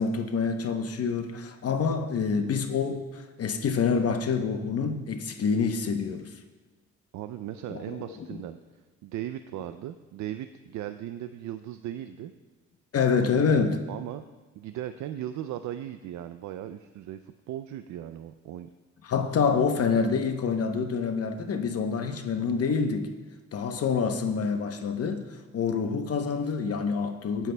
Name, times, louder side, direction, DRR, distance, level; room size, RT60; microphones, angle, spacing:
voice 1, 0.0-6.4 7.7-8.4 12.9-13.8 19.0-23.1 23.5-25.2 25.5-27.5, left 5 dB, 50° left, 6 dB, 0.9 m, -27 dB
voice 2, 7.1-8.6 9.0-12.3 13.9-14.2 14.6-18.7, right 12 dB, 70° right, 10 dB, 0.5 m, -37 dB
19.0 x 9.1 x 2.2 m, 1.3 s
cardioid pair, 90°, 30 cm